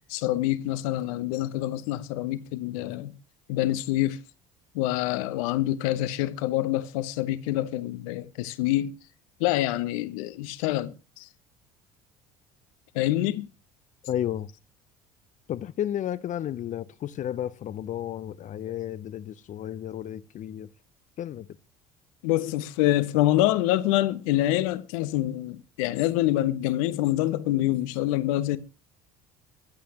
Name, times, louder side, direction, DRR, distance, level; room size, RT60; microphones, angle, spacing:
voice 1, 0.0-3.1 3.5-4.2 4.7-8.9 9.4-11.3 12.9-13.5 22.2-28.6, left 15 dB, 70° left, 0.9 m, -26 dB
voice 2, 14.0-14.5 15.5-20.7 21.2-21.5, left 11 dB, 45° left, 0.6 m, -32 dB
22.5 x 8.4 x 3.0 m
hypercardioid pair, 65°, 18 cm